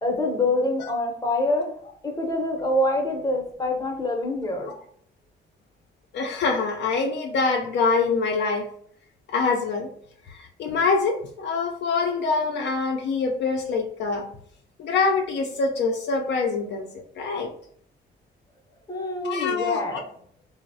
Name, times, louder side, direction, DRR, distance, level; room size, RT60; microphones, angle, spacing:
voice 1, 0.0-4.7 18.9-20.0, left 1 dB, 20° left, 2 dB, 0.7 m, -26 dB
voice 2, 6.1-8.7 9.3-9.9 10.3-14.3 14.8-16.9 17.2-17.5 19.2-20.0, left 4 dB, 65° left, 2 dB, 0.4 m, -25 dB
2.9 x 2.0 x 2.6 m, 0.63 s
cardioid pair, 90°, 20 cm